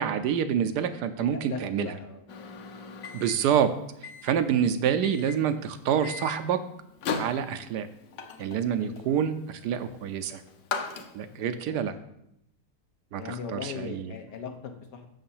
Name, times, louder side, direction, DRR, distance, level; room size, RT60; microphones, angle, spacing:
voice 1, 0.0-1.9 3.1-3.7 4.2-6.6 7.1-7.9 8.4-10.4 11.1-11.9 13.1-13.2 13.5-14.1, right 8 dB, 80° right, 10 dB, 1.2 m, -27 dB
voice 2, 1.3-2.2 2.7-2.8 4.4-4.7 8.8-9.1 11.3-12.0 13.2-15.1, left 6 dB, 80° left, 5 dB, 1.6 m, -40 dB
Microwave oven, 2.3-11.5, left 5 dB, 60° left, 1.1 m, -39 dB
6.3 x 5.7 x 7.1 m, 0.79 s
omnidirectional pair, 1.8 m